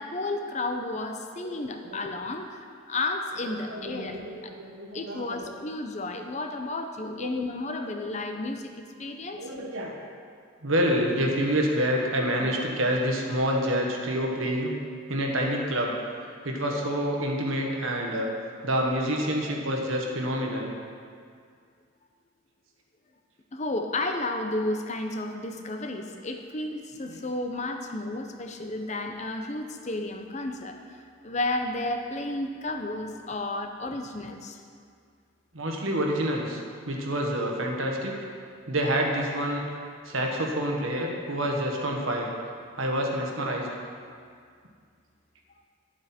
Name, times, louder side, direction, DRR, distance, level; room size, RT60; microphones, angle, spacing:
voice 1, 0.0-4.2 4.4-4.5 4.9-9.5 23.5-34.6, left 2 dB, 35° left, 5 dB, 0.7 m, -32 dB
voice 2, 1.4-2.0 3.4-5.5 7.1-7.4 7.8-7.9 9.3-10.0 10.6-14.7 15.1-15.9 16.4-18.3 18.6-20.7 27.1-27.2 35.5-38.3 38.7-39.6 40.0-42.3 42.8-43.7, equal, 75° right, 0 dB, 1.4 m, -28 dB
11.5 x 7.5 x 4.4 m, 2.2 s
head